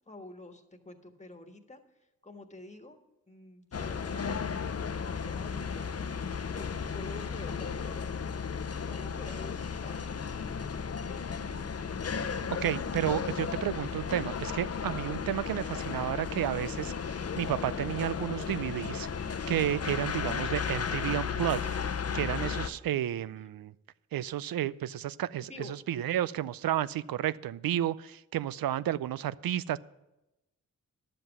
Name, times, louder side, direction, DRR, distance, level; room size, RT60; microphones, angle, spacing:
voice 1, 0.1-3.0 3.3-6.0 6.5-8.0 8.7-10.1 10.9-11.5 23.2-23.4 25.4-25.8, left 2 dB, 20° left, 6 dB, 1.5 m, -48 dB
sound 1, 3.7-22.7, left 6 dB, 45° left, 0.7 m, -34 dB
voice 2, 12.6-21.6 22.1-23.7 24.1-25.5 25.9-29.8, right 12 dB, 75° right, 19 dB, 0.5 m, -32 dB
11.5 x 7.7 x 6.0 m, 0.94 s
cardioid pair, 50°, 35 cm